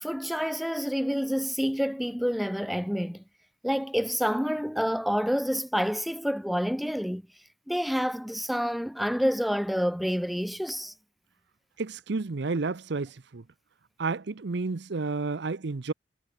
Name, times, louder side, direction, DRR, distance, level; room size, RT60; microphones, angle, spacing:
voice 1, 0.0-3.2 3.6-7.2 7.7-10.9, equal, ahead, 0.4 m, -28 dB
voice 2, 11.8-13.4 14.0-15.9, right 3 dB, 70° right, 0.7 m, -31 dB
head